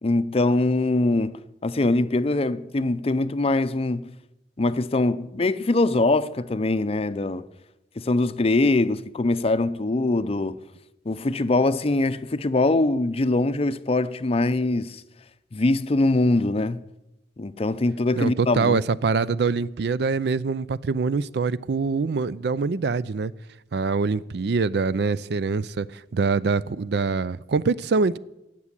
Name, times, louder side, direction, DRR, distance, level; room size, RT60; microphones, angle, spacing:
voice 1, 0.0-4.1 4.6-7.5 8.0-10.6 11.1-15.0 15.5-16.8 17.4-18.8, left 2 dB, 35° left, 0.5 m, -23 dB
voice 2, 18.2-23.3 23.7-28.2, right 4 dB, 70° right, 0.4 m, -24 dB
15.5 x 6.1 x 9.7 m
head